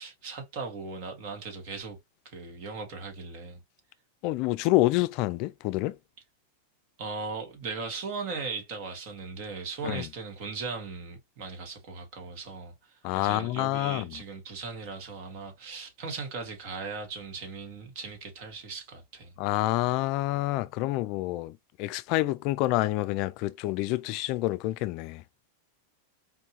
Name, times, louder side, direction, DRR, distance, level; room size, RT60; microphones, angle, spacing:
voice 1, 0.0-2.0 2.2-3.6 7.0-19.3, right 4 dB, 55° right, 1.8 m, -38 dB
voice 2, 4.2-6.0 9.8-10.1 13.0-14.2 19.4-21.5 21.8-25.2, left 18 dB, 50° left, 0.3 m, -27 dB
4.3 x 2.7 x 2.9 m
supercardioid pair, 140°, 0 cm